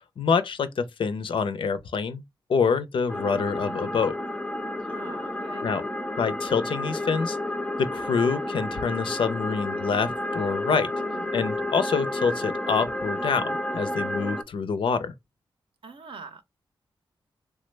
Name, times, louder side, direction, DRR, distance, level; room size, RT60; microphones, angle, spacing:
voice 1, 0.2-2.2 2.5-4.2 5.6-5.8 6.2-7.4 7.8-10.9 11.3-15.1, left 5 dB, 70° left, 0.4 m, -26 dB
sound 1, 3.1-14.4, left 1 dB, 10° left, 0.4 m, -31 dB
voice 2, 4.9-5.7 11.0-11.4 15.8-16.4, right 4 dB, 75° right, 0.6 m, -44 dB
3.4 x 2.0 x 3.2 m
wide cardioid pair, 95°, 9 cm